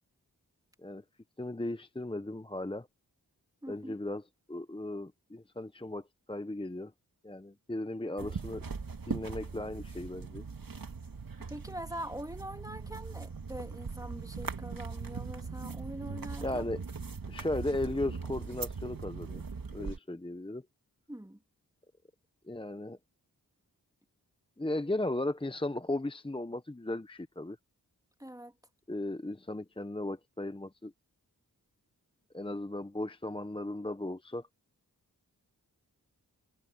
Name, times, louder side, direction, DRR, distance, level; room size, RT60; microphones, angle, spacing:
voice 1, 1.4-2.9 3.7-4.2 4.5-6.9 7.2-8.6 9.1-10.4 16.4-16.8 17.3-19.4 19.7-20.6 22.5-23.0 24.6-27.6 28.9-30.9 32.3-34.5, left 2 dB, 15° left, 0.9 m, -36 dB
voice 2, 3.6-4.0 11.5-16.7 21.1-21.4 28.2-28.5, right 1 dB, 10° right, 2.4 m, -43 dB
sound 1, 8.2-20.0, right 4 dB, 65° right, 2.0 m, -40 dB
cardioid pair, 40°, 37 cm